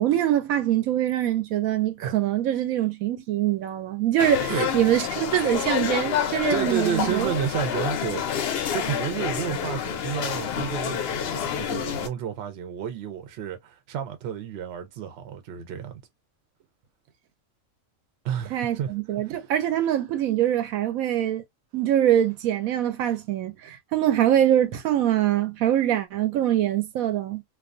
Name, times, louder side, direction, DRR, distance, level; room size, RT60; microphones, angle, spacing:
voice 1, 0.0-7.3 18.5-21.4 21.7-27.4, right 11 dB, 80° right, 1.0 m, -24 dB
sound 1, 4.2-12.1, left 9 dB, 65° left, 0.6 m, -28 dB
voice 2, 6.5-8.2 8.7-16.0 18.2-18.9 19.2-19.4, right 9 dB, 60° right, 0.8 m, -31 dB
2.3 x 2.3 x 2.5 m
omnidirectional pair, 1.5 m